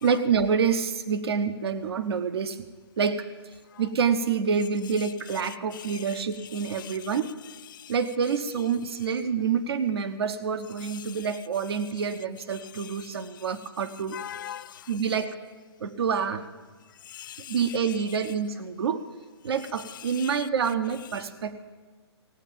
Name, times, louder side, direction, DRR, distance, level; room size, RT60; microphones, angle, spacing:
voice 1, 0.0-2.6 3.0-3.3 3.8-7.3 7.9-14.2 14.9-15.4 15.8-16.4 17.5-19.0 19.4-21.5, right 6 dB, 65° right, 1.0 m, -27 dB
voice 2, 5.5-6.2 6.5-7.1 10.8-11.2 12.8-12.9 14.1-14.8 17.1-18.0 19.9-20.5, left 11 dB, 45° left, 0.4 m, -42 dB
17.5 x 9.1 x 8.9 m
hypercardioid pair, 135°, 14 cm